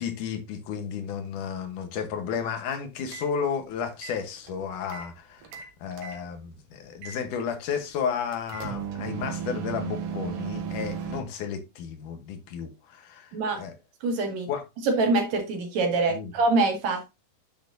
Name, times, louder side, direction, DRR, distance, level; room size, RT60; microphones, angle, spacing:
voice 1, 0.0-13.7 14.5-14.6 16.1-16.3, left 7 dB, 80° left, 2.7 m, -33 dB
sound 1, 3.0-3.3 3.9-5.1 5.4-6.2 7.0-7.2 8.3-11.2, right 7 dB, 80° right, 3.1 m, -35 dB
voice 2, 14.0-14.5 14.8-17.2, right 3 dB, 60° right, 3.2 m, -25 dB
10.0 x 6.4 x 2.7 m
omnidirectional pair, 3.6 m